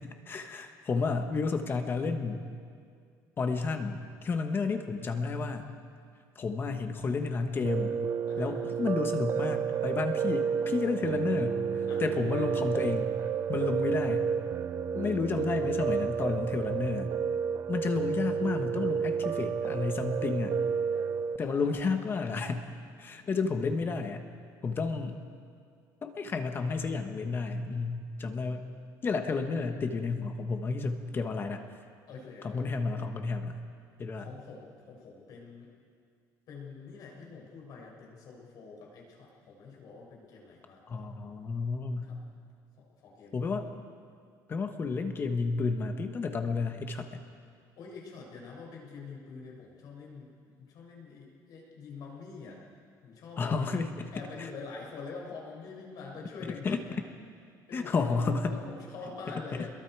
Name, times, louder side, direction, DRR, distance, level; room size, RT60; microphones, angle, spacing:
voice 1, 0.3-2.5 3.4-5.7 6.3-7.9 8.4-13.2 13.5-14.3 14.9-17.1 17.7-20.6 21.4-22.7 23.0-24.3 24.6-25.2 26.0-28.6 29.0-31.6 32.4-33.6 34.0-34.3 40.9-42.1 43.3-43.7 44.5-47.2 53.4-54.1 54.4-54.5 56.6-56.8 57.7-58.6, left 4 dB, 30° left, 6 dB, 1.4 m, -31 dB
Piano, 7.6-21.4, right 7 dB, 35° right, 0.6 m, -31 dB
voice 2, 8.3-8.7 11.9-12.6 21.4-22.2 23.1-23.5 25.1-25.2 32.1-32.8 34.2-35.7 36.5-41.1 42.0-42.2 42.8-43.7 47.8-52.6 53.0-53.7 54.1-57.0 57.7-59.7, left 4 dB, 55° left, -2 dB, 6.7 m, -46 dB
28.5 x 22.0 x 4.8 m, 2.2 s
cardioid pair, 145°, 8 cm